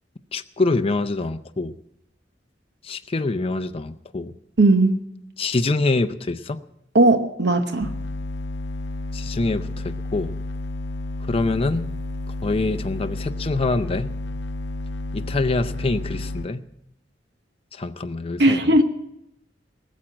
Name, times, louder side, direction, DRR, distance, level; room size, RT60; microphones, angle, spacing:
voice 1, 0.3-1.7 2.8-4.3 5.4-6.6 9.1-10.3 11.3-11.8 12.4-14.1 15.1-16.6 17.7-18.8, left 3 dB, 30° left, 9 dB, 0.5 m, -25 dB
voice 2, 4.6-5.0 6.9-7.9 18.4-18.8, right 2 dB, 65° right, 7 dB, 1.0 m, -17 dB
sound 1, 7.8-16.5, left 2 dB, 75° left, 0.8 m, -31 dB
19.0 x 7.3 x 8.8 m, 0.82 s
head